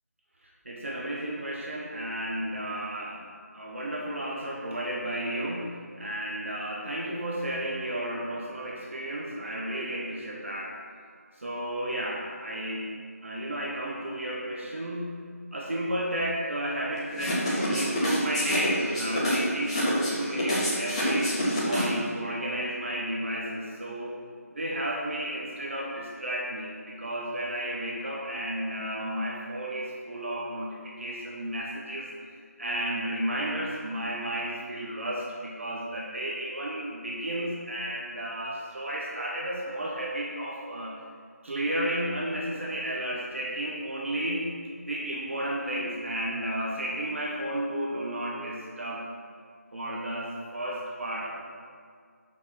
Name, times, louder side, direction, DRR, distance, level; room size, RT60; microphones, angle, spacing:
voice 1, 0.4-3.2 3.5-10.8 11.3-12.9 13.2-15.2 15.5-24.2 24.5-41.0 41.4-44.5 44.9-49.1 49.7-51.3, right 1 dB, 50° right, -3 dB, 1.2 m, -33 dB
sound 1, 17.1-22.1, equal, 20° left, 1.9 m, -27 dB
7.7 x 5.8 x 6.0 m, 2.1 s
figure-of-eight pair, 175°, 9 cm